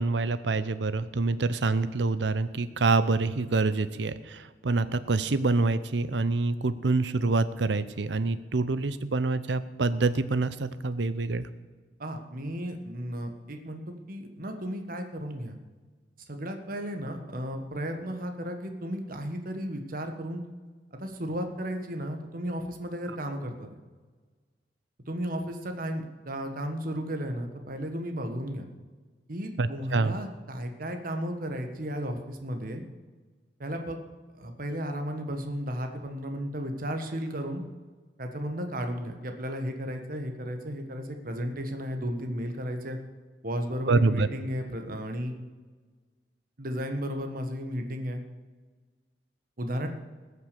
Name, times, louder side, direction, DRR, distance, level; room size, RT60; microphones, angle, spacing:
voice 1, 0.0-11.5 29.6-30.1 43.9-44.3, right 3 dB, 85° right, 14 dB, 0.7 m, -26 dB
voice 2, 12.0-15.6 16.3-20.4 20.9-23.7 25.1-28.7 29.3-32.8 33.6-34.0 34.3-37.6 38.2-43.0 43.4-45.3 46.6-48.2 49.6-49.9, equal, 55° right, 5 dB, 1.4 m, -34 dB
19.5 x 6.7 x 6.8 m, 1.4 s
head